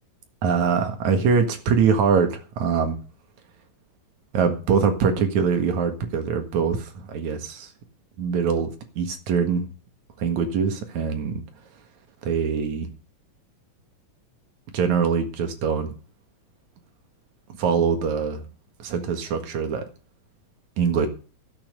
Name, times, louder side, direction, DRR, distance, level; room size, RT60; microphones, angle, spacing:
voice 1, 0.4-3.0 4.3-7.7 8.2-9.6 10.2-11.4 12.2-12.9 14.7-15.9 17.6-18.4 18.8-19.9 20.8-21.1, right 6 dB, 65° right, 6 dB, 2.9 m, -23 dB
12.5 x 8.8 x 6.7 m, 0.38 s
omnidirectional pair, 3.9 m